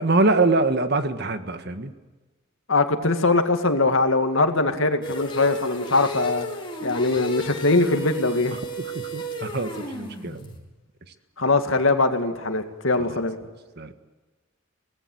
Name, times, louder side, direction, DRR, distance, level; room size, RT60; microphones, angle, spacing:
voice 1, 0.0-1.9 8.8-10.4 13.1-13.2 13.8-13.9, right 3 dB, 50° right, 9 dB, 1.6 m, -24 dB
voice 2, 2.7-6.5 6.8-8.5 11.4-13.4, left 3 dB, 70° left, 7 dB, 2.2 m, -21 dB
sound 1, 5.0-10.6, equal, 25° left, 4.0 m, -34 dB
24.0 x 18.5 x 8.0 m, 1.3 s
head